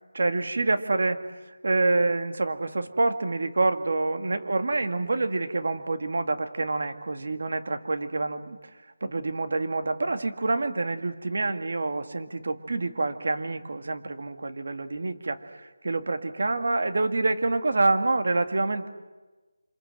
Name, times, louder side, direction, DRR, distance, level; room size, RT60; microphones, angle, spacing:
voice 1, 0.1-1.2 1.6-8.6 9.0-18.9, right 2 dB, 65° right, 7 dB, 2.1 m, -27 dB
27.0 x 27.0 x 7.9 m, 1.2 s
figure-of-eight pair, 165°, 0 cm